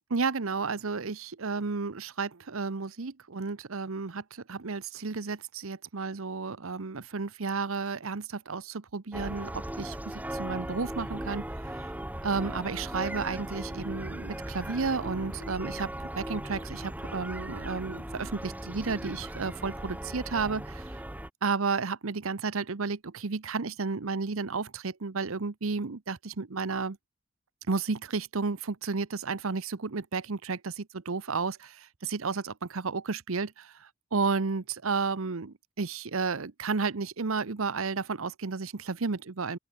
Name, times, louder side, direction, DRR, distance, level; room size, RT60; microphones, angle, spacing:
voice 1, 0.1-11.5 11.8-11.9 12.2-20.9 21.4-27.0 27.7-39.6, right 4 dB, 70° right, 0.9 m, -32 dB
sound 1, 9.1-21.3, right 1 dB, 10° right, 0.9 m, -38 dB
open air
head